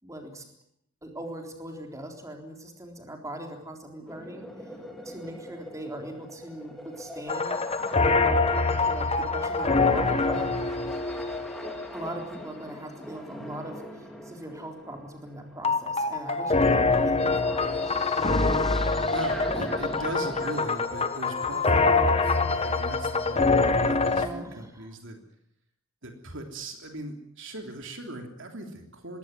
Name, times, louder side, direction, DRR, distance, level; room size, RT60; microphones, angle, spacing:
voice 1, 0.0-0.5 1.0-4.5 5.0-7.6 8.8-10.5 11.9-17.6 24.1-24.9, right 1 dB, 15° right, 3 dB, 3.8 m, -40 dB
sound 1, 4.1-20.6, equal, ahead, 3.2 m, -42 dB
sound 2, 7.3-12.2 15.6-24.3, left 3 dB, 30° left, 1.4 m, -25 dB
voice 2, 19.1-25.2 26.0-29.2, right 2 dB, 60° right, 4 dB, 3.3 m, -39 dB
21.0 x 17.5 x 9.5 m, 0.75 s
head